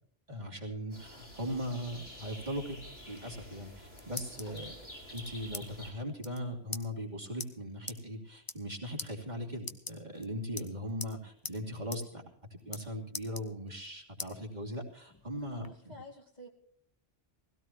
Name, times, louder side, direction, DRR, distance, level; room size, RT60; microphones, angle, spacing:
voice 1, 0.3-4.7 5.1-12.2 12.5-16.0, equal, 45° right, -1 dB, 3.0 m, -39 dB
sound 1, 0.9-5.9, equal, 75° left, 5.6 m, -49 dB
sound 2, 3.7-4.6 5.1-5.6 5.9-6.0 6.2-6.4 6.7-6.8 7.4-7.5 7.9-8.0 8.4-8.7 9.0-9.1 9.6-10.2 10.6-11.1 11.4-11.6 11.9-12.0 12.3-12.8 13.1-13.9 14.2-14.3 14.8-15.7, left 2 dB, 20° left, 1.0 m, -42 dB
voice 2, 4.4-4.7 15.5-16.5, equal, 40° left, 0 dB, 2.7 m, -50 dB
20.5 x 17.0 x 3.0 m, 0.66 s
omnidirectional pair, 1.1 m